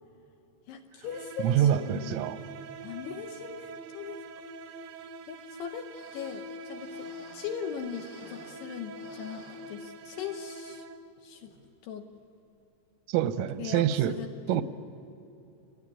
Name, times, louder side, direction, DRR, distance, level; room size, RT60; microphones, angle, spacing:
voice 1, 0.7-2.2 2.8-4.2 5.3-7.1 7.3-10.8 11.2-11.5 11.8-12.1 13.6-14.6, left 7 dB, 75° left, 5 dB, 2.6 m, -39 dB
sound 1, 1.0-11.2, right 2 dB, 75° right, 2.1 m, -44 dB
voice 2, 1.4-2.4 13.1-14.2 14.5-14.6, right 10 dB, 90° right, 12 dB, 3.6 m, -26 dB
sound 2, 5.8-8.7 8.9-10.3 10.7-10.8 11.5-11.7 12.1-12.2, left 2 dB, 55° left, 6.7 m, -56 dB
26.5 x 20.0 x 9.9 m, 2.9 s
omnidirectional pair, 5.8 m